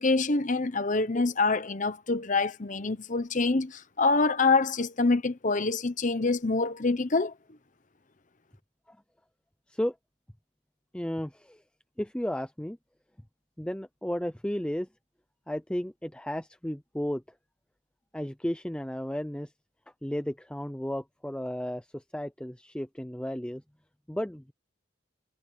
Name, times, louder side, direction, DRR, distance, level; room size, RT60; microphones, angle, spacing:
voice 1, 0.0-7.3, left 3 dB, 40° left, 0.9 m, -26 dB
voice 2, 10.9-11.6 12.0-12.8 13.6-14.9 15.5-17.2 18.1-19.5 20.0-23.6 24.1-24.5, equal, 5° left, 0.5 m, -33 dB
head